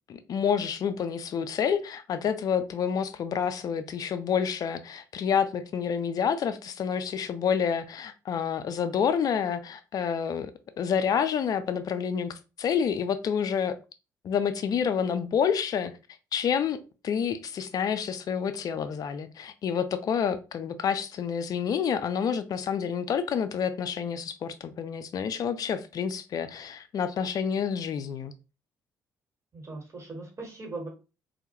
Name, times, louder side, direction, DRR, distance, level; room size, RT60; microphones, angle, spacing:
voice 1, 0.1-10.5 10.8-13.8 14.2-15.9 16.3-16.8 17.0-28.3, left 7 dB, 40° left, 0.3 m, -28 dB
voice 2, 29.5-30.9, right 3 dB, 30° right, 1.2 m, -39 dB
2.2 x 2.0 x 2.8 m
figure-of-eight pair, 45°, 9 cm